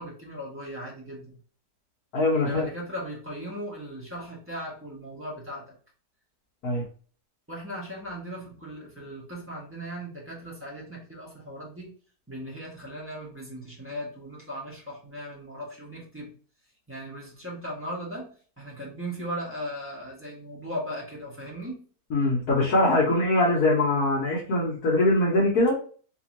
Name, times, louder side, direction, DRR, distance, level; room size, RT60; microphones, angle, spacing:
voice 1, 0.0-1.4 2.4-5.7 7.5-11.9 12.3-16.3 16.9-21.8, equal, 10° right, -5 dB, 1.2 m, -38 dB
voice 2, 2.1-2.7 6.6-6.8 22.1-25.8, left 2 dB, 70° left, -5 dB, 1.4 m, -22 dB
3.4 x 2.9 x 2.9 m, 0.42 s
omnidirectional pair, 1.6 m